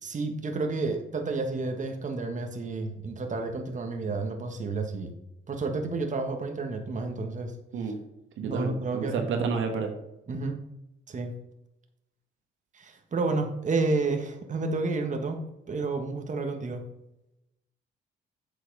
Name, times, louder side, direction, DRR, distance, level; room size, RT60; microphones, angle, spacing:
voice 1, 0.0-5.1 5.5-7.5 8.4-9.5 10.3-10.6 11.1-11.3 12.7-15.4 15.7-16.9, right 3 dB, 40° right, 4 dB, 1.5 m, -30 dB
voice 2, 8.4-9.9, right 5 dB, 80° right, 5 dB, 1.5 m, -30 dB
8.2 x 5.9 x 5.5 m, 0.86 s
cardioid pair, 90°, 20 cm